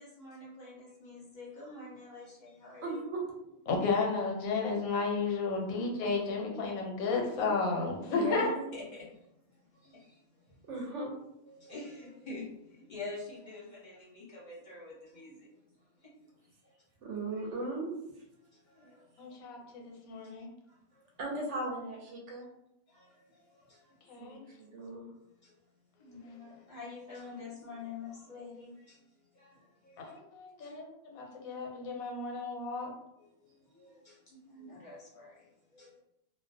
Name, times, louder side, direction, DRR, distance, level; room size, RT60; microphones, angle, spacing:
voice 1, 0.0-3.0 8.7-9.3 9.7-10.6 11.5-15.5 16.0-16.4 16.6-16.7 18.5-19.9 20.7-21.0 22.9-24.1 24.8-24.9 25.3-25.5 25.9-29.1 29.3-30.1 30.6-30.8 33.2-36.0, left 3 dB, 45° left, -6 dB, 0.6 m, -48 dB
voice 2, 2.8-3.2 3.7-3.8 8.1-8.7 10.7-11.1 17.0-17.9 21.2-22.4 24.2-25.1, right 2 dB, 65° right, -1 dB, 0.9 m, -37 dB
voice 3, 3.7-8.5 19.2-20.5 24.1-24.4 30.0-32.9, left 4 dB, 85° left, 0 dB, 1.1 m, -33 dB
2.4 x 2.1 x 2.5 m, 0.84 s
omnidirectional pair, 1.4 m